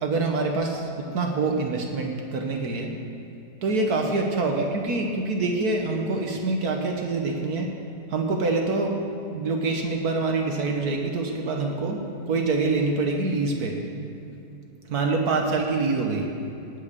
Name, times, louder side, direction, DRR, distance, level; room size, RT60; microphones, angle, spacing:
voice 1, 0.0-2.9 3.6-7.7 8.1-9.0 9.3-12.0 12.3-13.8 14.9-16.3, right 3 dB, 70° right, 2 dB, 1.6 m, -25 dB
19.0 x 6.5 x 6.7 m, 2.8 s
omnidirectional pair, 1.7 m